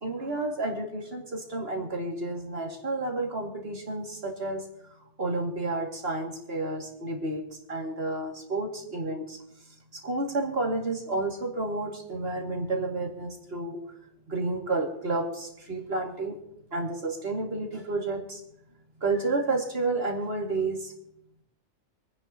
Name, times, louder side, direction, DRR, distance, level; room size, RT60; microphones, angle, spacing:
voice 1, 0.0-4.7 5.2-7.4 7.7-9.4 10.0-13.8 14.3-16.3 16.7-18.4 19.0-20.9, right 2 dB, 55° right, 0 dB, 2.4 m, -30 dB
27.0 x 9.6 x 2.8 m, 0.80 s
omnidirectional pair, 1.2 m